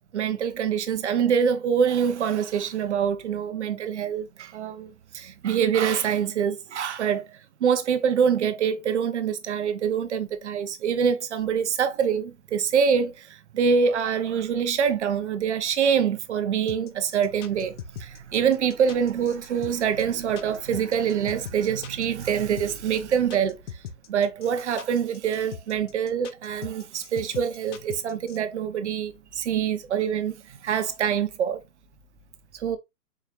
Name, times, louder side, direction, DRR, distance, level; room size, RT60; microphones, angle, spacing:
voice 1, 0.1-17.7 18.0-23.6 24.1-31.6 32.5-32.8, right 7 dB, 50° right, 0.7 m, -25 dB
sound 1, 16.7-28.4, left 8 dB, 50° left, 0.7 m, -39 dB
4.6 x 3.3 x 2.4 m
hypercardioid pair, 140°, 47 cm